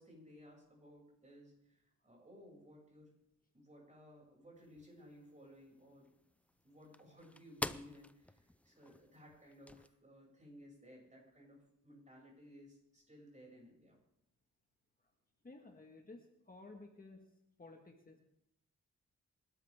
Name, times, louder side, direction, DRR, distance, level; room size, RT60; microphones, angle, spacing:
voice 1, 0.0-3.1 3.5-6.1 6.6-14.0, equal, 25° right, -2 dB, 7.3 m, -58 dB
sound 1, 4.6-9.9, left 1 dB, 5° left, 0.5 m, -49 dB
voice 2, 15.4-17.3 17.6-18.2, left 2 dB, 30° left, 2 dB, 1.8 m, -55 dB
27.0 x 12.5 x 3.7 m, 0.81 s
wide cardioid pair, 105°, 30 cm